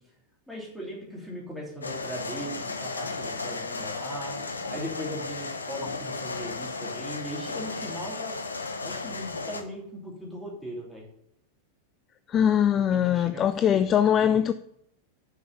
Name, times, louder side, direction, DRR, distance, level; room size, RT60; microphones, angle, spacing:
voice 1, 0.5-8.3 8.8-11.1 12.7-14.4, equal, ahead, 3.0 m, -39 dB
sound 1, 1.8-9.6, left 3 dB, 75° left, 0.8 m, -34 dB
voice 2, 12.3-14.5, left 9 dB, 30° left, 0.3 m, -22 dB
6.7 x 5.5 x 7.0 m
figure-of-eight pair, 90°, 0 cm